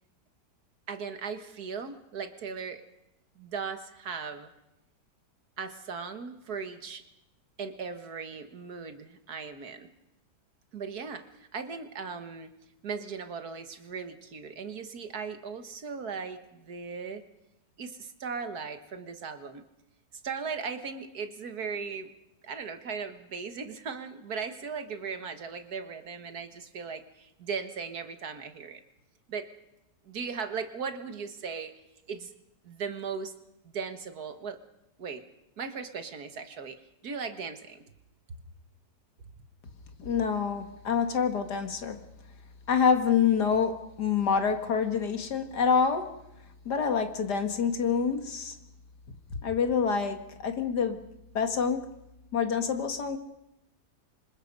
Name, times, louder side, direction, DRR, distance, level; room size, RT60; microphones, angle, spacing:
voice 1, 0.9-2.8 3.4-4.5 5.6-7.0 7.6-9.9 10.7-12.5 12.8-17.2 17.8-19.6 20.2-22.1 22.4-28.8 29.3-29.5 30.0-31.7 32.1-32.3 32.6-33.3 33.6-34.6 35.0-35.3 35.6-37.9, right 5 dB, 65° right, 8 dB, 1.9 m, -38 dB
voice 2, 40.0-42.0 42.7-46.1 46.7-48.6 49.4-51.0 51.3-51.9 52.3-53.2, left 6 dB, 75° left, 7 dB, 2.3 m, -26 dB
27.0 x 25.5 x 5.4 m, 0.87 s
omnidirectional pair, 1.8 m